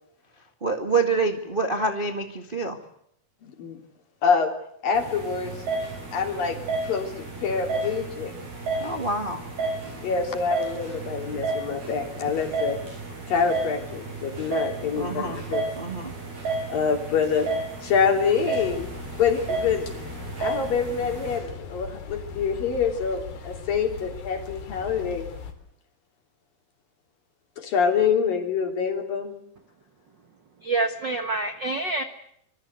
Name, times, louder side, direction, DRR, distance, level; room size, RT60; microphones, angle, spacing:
voice 1, 0.6-2.8 8.8-9.5 15.0-15.4 15.7-16.1, right 3 dB, 25° right, 5 dB, 1.2 m, -26 dB
voice 2, 3.4-3.8 4.2-4.5 4.8-5.6 6.1-8.3 10.0-12.8 13.3-15.7 16.7-17.5 17.8-18.9 19.2-20.1 20.4-25.3 27.6-29.3, left 6 dB, 65° left, 5 dB, 5.1 m, -26 dB
sound 1, 4.9-21.4, right 3 dB, 75° right, 8.7 m, -32 dB
sound 2, 18.6-25.5, left 5 dB, 90° left, 5.4 m, -39 dB
voice 3, 30.6-32.0, right 3 dB, 55° right, 8 dB, 1.2 m, -26 dB
26.0 x 23.0 x 8.2 m, 0.70 s
omnidirectional pair, 4.4 m